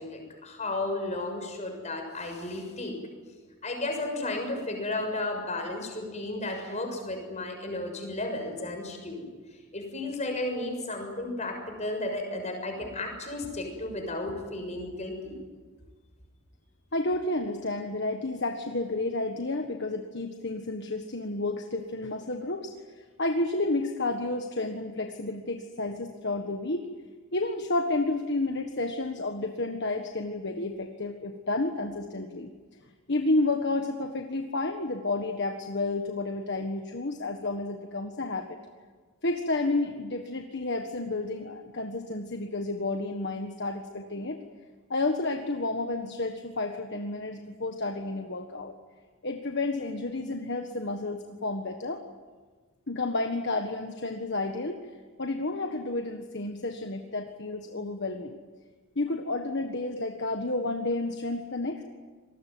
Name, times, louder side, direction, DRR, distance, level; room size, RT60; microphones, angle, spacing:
voice 1, 0.0-3.0 3.6-9.3 9.7-15.4, left 2 dB, 30° left, 3 dB, 6.8 m, -33 dB
voice 2, 16.9-26.9 27.3-32.5 33.1-38.6 39.2-44.4 44.9-48.7 49.2-52.0 52.9-54.8 55.2-58.4 58.9-61.8, left 2 dB, 50° left, 4 dB, 1.6 m, -31 dB
27.0 x 20.5 x 9.5 m, 1.4 s
head